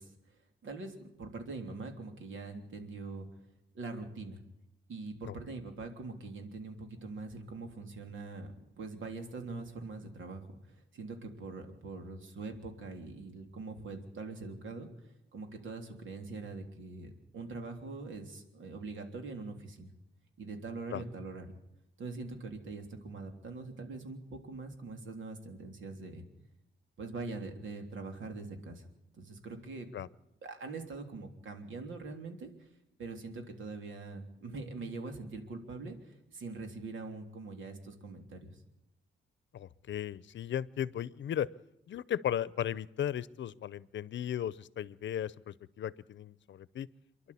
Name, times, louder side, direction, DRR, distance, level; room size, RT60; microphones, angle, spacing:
voice 1, 0.0-3.3 3.7-4.4 4.9-14.9 15.3-19.9 20.4-21.4 22.0-26.3 27.0-28.8 29.2-29.9 30.4-32.7 33.0-38.6, right 3 dB, 85° right, 5 dB, 3.4 m, -43 dB
voice 2, 39.5-41.5 41.9-46.9, left 10 dB, 70° left, 20 dB, 0.7 m, -36 dB
28.5 x 11.5 x 8.5 m, 0.89 s
wide cardioid pair, 140°, 20 cm